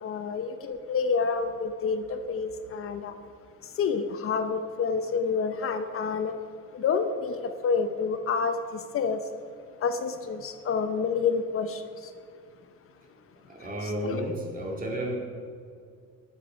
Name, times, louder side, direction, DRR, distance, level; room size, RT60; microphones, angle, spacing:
voice 1, 0.0-3.1 3.8-6.3 6.7-9.2 9.8-11.8 13.8-14.2, left 5 dB, 50° left, 8 dB, 0.8 m, -28 dB
voice 2, 13.5-15.2, right 1 dB, 30° right, 0 dB, 2.3 m, -32 dB
19.0 x 6.9 x 5.0 m, 2.3 s
cardioid pair, 150°, 29 cm